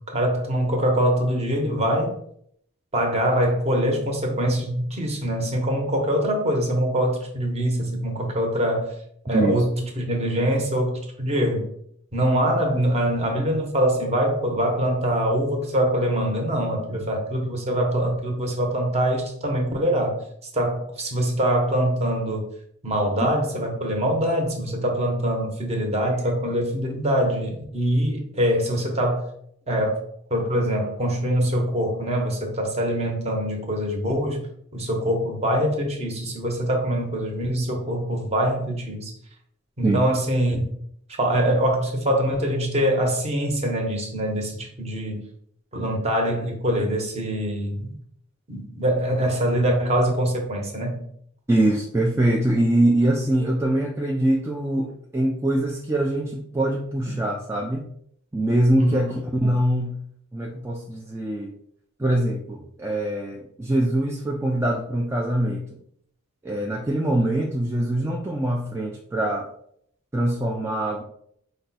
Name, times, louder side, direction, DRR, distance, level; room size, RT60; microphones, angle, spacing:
voice 1, 0.1-2.2 2.9-8.9 9.2-11.7 12.1-20.2 20.5-22.5 22.8-29.3 29.7-30.0 30.3-34.5 34.7-39.1 39.8-40.6 41.2-45.2 45.7-47.9 48.5-51.0 58.8-59.0, equal, 30° right, 1 dB, 0.9 m, -24 dB
voice 2, 9.3-9.6 39.8-40.1 51.5-57.9 58.3-60.0 60.3-61.5 62.0-65.7 66.4-69.5 70.1-71.0, right 1 dB, 10° right, -1 dB, 0.3 m, -23 dB
5.0 x 2.2 x 4.0 m, 0.67 s
head